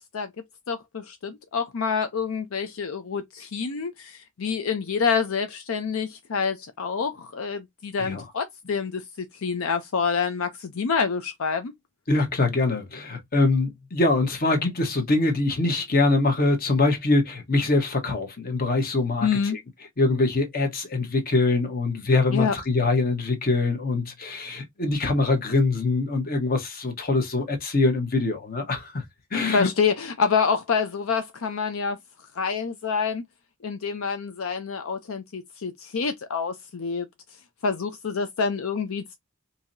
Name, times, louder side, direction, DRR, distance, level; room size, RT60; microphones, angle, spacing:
voice 1, 0.7-11.7 19.2-19.6 22.3-22.6 29.5-32.0 32.4-33.2 33.6-37.1 37.6-39.2, left 5 dB, 75° left, 0.6 m, -27 dB
voice 2, 12.1-19.6 20.0-29.0 29.3-29.7, left 3 dB, 45° left, 1.2 m, -23 dB
4.6 x 2.8 x 2.6 m
head